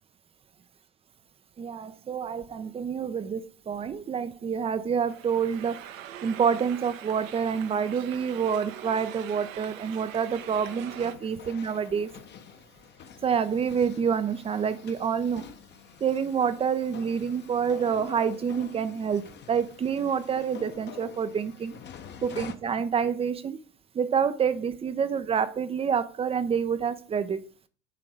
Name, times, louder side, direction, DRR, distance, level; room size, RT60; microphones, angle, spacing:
voice 1, 1.6-5.8 6.2-12.1 13.2-15.4 16.0-21.7 22.2-23.6 23.9-27.4, right 7 dB, 15° right, 13 dB, 0.6 m, -27 dB
sound 1, 5.1-11.1, right 11 dB, 70° right, 1.0 m, -43 dB
sound 2, 10.3-22.6, left 7 dB, 25° left, 0.9 m, -47 dB
9.9 x 3.8 x 4.8 m, 0.40 s
hypercardioid pair, 90°, 41 cm